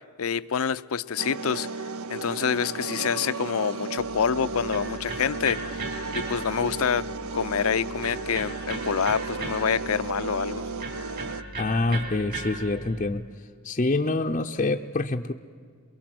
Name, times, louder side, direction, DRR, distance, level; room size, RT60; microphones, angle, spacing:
voice 1, 0.2-1.7 2.1-5.6 6.1-7.1 7.3-10.7, left 7 dB, 70° left, 14 dB, 0.6 m, -27 dB
sound 1, 1.2-11.4, right 4 dB, 65° right, 0.7 m, -34 dB
Electric guitar, 4.0-13.1, right 2 dB, 45° right, 4.5 m, -38 dB
voice 2, 11.6-13.3 13.6-15.3, left 2 dB, 30° left, 2 dB, 0.6 m, -26 dB
23.5 x 22.5 x 7.7 m, 2.1 s
head